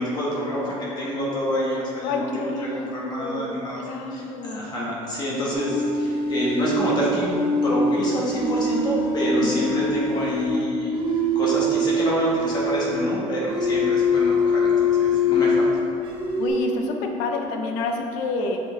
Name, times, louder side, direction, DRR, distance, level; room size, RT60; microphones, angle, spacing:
voice 1, 0.0-3.8 4.1-15.7, left 1 dB, 35° left, -5 dB, 1.3 m, -27 dB
voice 2, 2.0-3.5 3.8-4.7 9.4-9.7 16.4-18.6, left 3 dB, 90° left, 4 dB, 0.8 m, -29 dB
sound 1, 5.5-10.5 10.9-13.0 13.5-15.8 16.0-16.5, left 1 dB, 40° right, 1.3 m, -23 dB
7.4 x 5.1 x 3.3 m, 2.7 s
cardioid pair, 160°, 12 cm